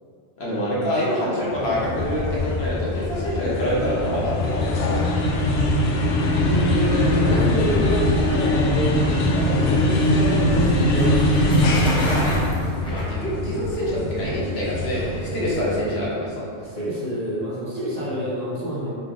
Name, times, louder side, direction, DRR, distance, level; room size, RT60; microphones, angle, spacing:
voice 1, 0.4-5.1 12.8-16.5, equal, 60° left, -7 dB, 1.2 m, -26 dB
sound 1, 1.5-16.0, left 1 dB, 80° left, 0.9 m, -22 dB
voice 2, 6.4-11.6 16.0-18.9, equal, 35° right, -8 dB, 0.9 m, -28 dB
sound 2, 9.2-13.7, equal, 5° left, 0.8 m, -31 dB
3.8 x 3.3 x 3.8 m, 2.5 s
omnidirectional pair, 1.2 m